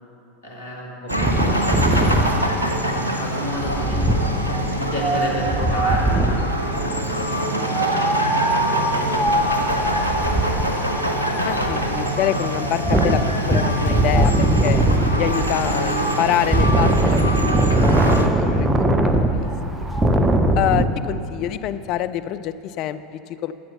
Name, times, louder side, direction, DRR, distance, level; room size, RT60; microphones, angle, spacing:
voice 1, 0.4-1.1 1.4-4.1 4.8-10.4 19.4-20.0, left 1 dB, 75° left, -3 dB, 2.4 m, -33 dB
Wind, 1.1-6.5 7.6-20.9, right 1 dB, 15° right, 1.0 m, -21 dB
sound 1, 1.1-18.3, right 1 dB, 85° right, 0.9 m, -24 dB
voice 2, 11.4-14.3 14.6-14.8 15.2-17.2 17.7-18.0 18.4-18.8 19.3-19.5 19.8-19.9 20.6-23.5, left 11 dB, 50° left, 12 dB, 0.5 m, -26 dB
13.0 x 7.9 x 7.0 m, 2.7 s
figure-of-eight pair, 80°, 0 cm